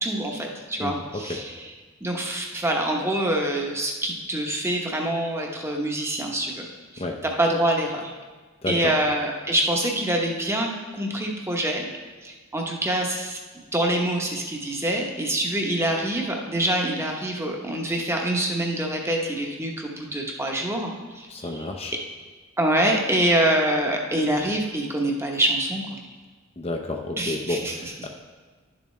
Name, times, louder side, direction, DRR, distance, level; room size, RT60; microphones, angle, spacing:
voice 1, 0.0-1.7 2.0-6.7 6.9-8.1 8.7-11.9 12.2-13.4 13.7-21.5 22.6-26.0 27.2-27.9, right 1 dB, 15° right, 1 dB, 0.9 m, -25 dB
voice 2, 0.8-1.4 7.0-7.2 8.6-8.9 21.3-21.9 26.6-28.1, left 2 dB, 30° left, 3 dB, 0.5 m, -31 dB
11.0 x 7.0 x 3.2 m, 1.4 s
head